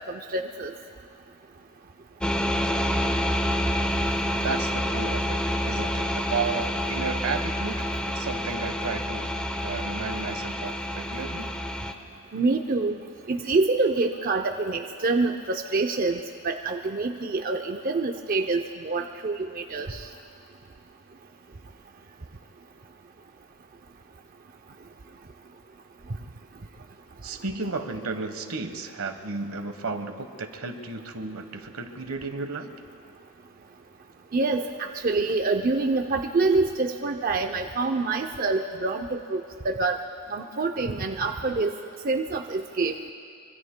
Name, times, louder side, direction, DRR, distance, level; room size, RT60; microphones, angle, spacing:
voice 1, 0.1-0.7 12.3-13.0 13.3-20.0 34.3-40.0 40.3-41.7 42.0-42.9, right 3 dB, 40° right, 4 dB, 0.5 m, -26 dB
sound 1, 2.2-11.9, equal, 5° left, 0.6 m, -28 dB
voice 2, 4.4-9.3 9.6-11.5 27.2-32.7, right 4 dB, 80° right, 7 dB, 1.2 m, -33 dB
25.0 x 24.5 x 2.2 m, 2.3 s
head